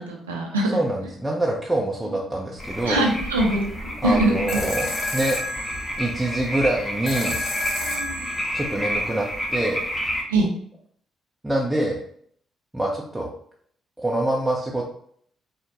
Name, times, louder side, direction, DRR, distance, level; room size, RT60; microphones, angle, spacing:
voice 1, 0.0-0.7 2.8-4.9 7.8-8.3 10.3-10.5, right 2 dB, 80° right, 0 dB, 0.8 m, -24 dB
voice 2, 0.7-3.1 4.0-5.4 6.0-7.4 8.5-9.8 11.4-12.0 12.7-13.3 14.0-14.8, right 1 dB, 10° right, -2 dB, 0.8 m, -25 dB
sound 1, 2.6-10.2, equal, 15° left, 1.2 m, -30 dB
sound 2, 4.5-9.5, left 2 dB, 60° left, 0.8 m, -32 dB
4.4 x 3.3 x 3.0 m, 0.62 s
figure-of-eight pair, 40°, 0 cm